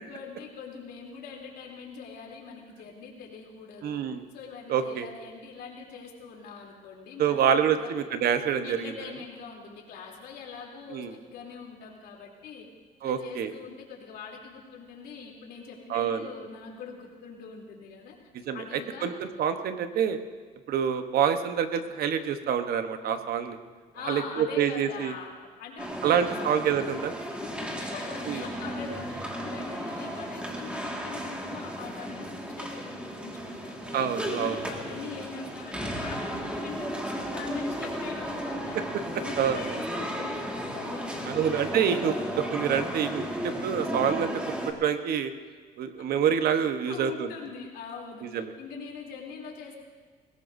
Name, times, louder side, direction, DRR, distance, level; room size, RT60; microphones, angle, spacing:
voice 1, 0.0-4.0 4.3-7.9 8.6-12.6 13.0-18.1 18.5-19.1 23.9-26.5 27.4-34.0 34.3-38.8 39.1-41.6 46.9-49.7, left 5 dB, 75° left, -1 dB, 3.2 m, -43 dB
voice 2, 3.8-4.2 4.7-5.1 7.2-8.9 10.9-11.1 13.0-13.5 15.9-16.3 18.5-18.6 19.0-20.2 20.7-23.6 24.1-25.1 26.0-27.1 28.3-28.4 33.9-34.6 38.7-38.8 39.4-39.6 41.3-45.3 45.8-47.3 48.3-48.5, right 8 dB, 65° right, 8 dB, 1.1 m, -27 dB
sound 1, 25.8-44.7, equal, 5° right, 1.9 m, -34 dB
21.0 x 17.5 x 2.7 m, 1.5 s
cardioid pair, 110°, 17 cm